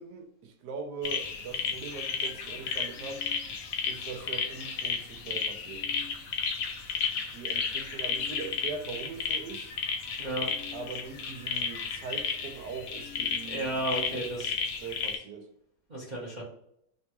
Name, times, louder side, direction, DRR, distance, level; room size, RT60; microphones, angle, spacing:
voice 1, 0.0-3.2 3.9-5.8 7.1-9.7 10.7-14.5 14.8-15.5, right 5 dB, 85° right, 4 dB, 1.2 m, -41 dB
sound 1, 1.0-15.2, left 6 dB, 70° left, 0.9 m, -33 dB
voice 2, 10.2-10.5 13.5-14.5 15.9-16.4, right 1 dB, 45° right, -7 dB, 0.6 m, -33 dB
3.1 x 2.3 x 2.9 m, 0.74 s
omnidirectional pair, 1.7 m